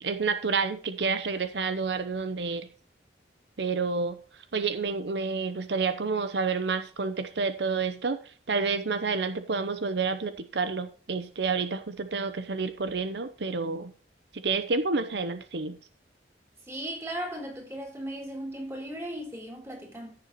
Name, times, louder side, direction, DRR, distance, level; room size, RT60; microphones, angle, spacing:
voice 1, 0.0-2.7 3.6-4.2 4.5-13.9 14.3-15.8, right 4 dB, 75° right, 0.7 m, -29 dB
voice 2, 16.7-20.1, right 1 dB, 15° right, 3.3 m, -37 dB
15.0 x 6.8 x 3.0 m
head